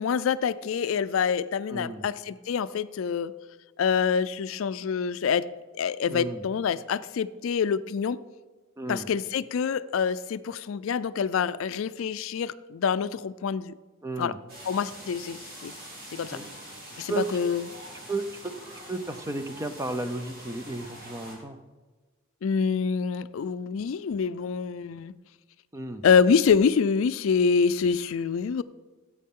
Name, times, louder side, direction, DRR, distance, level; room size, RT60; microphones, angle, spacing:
voice 1, 0.0-3.3 3.8-5.5 5.8-8.2 8.9-13.7 14.2-14.3 14.7-15.7 16.1-16.4 17.0-17.6 22.4-25.1 26.0-28.6, left 6 dB, 75° left, 15 dB, 0.4 m, -26 dB
voice 2, 1.7-2.0 6.1-6.4 8.8-9.1 14.0-14.4 16.3-16.8 17.1-17.3 18.1-18.5 18.9-21.6 25.7-26.0, right 2 dB, 15° right, 8 dB, 0.6 m, -33 dB
sound 1, 14.5-21.4, right 1 dB, 45° right, 3.1 m, -44 dB
14.0 x 8.4 x 3.7 m, 1.3 s
head